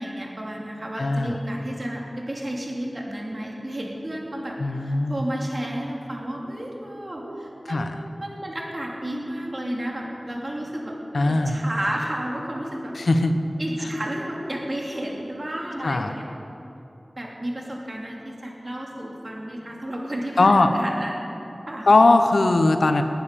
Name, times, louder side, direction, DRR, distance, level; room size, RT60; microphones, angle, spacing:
voice 1, 0.0-7.9 8.2-10.9 11.3-13.0 13.6-16.2 17.2-21.3 21.7-21.9, right 1 dB, 40° right, -2 dB, 3.0 m, -32 dB
voice 2, 1.0-1.4 4.6-5.2 7.7-8.0 11.1-11.6 12.9-13.4 15.8-16.1 20.4-20.7 21.9-23.0, left 2 dB, 80° left, 7 dB, 0.9 m, -19 dB
18.5 x 9.3 x 6.8 m, 2.9 s
wide cardioid pair, 45°, 0 cm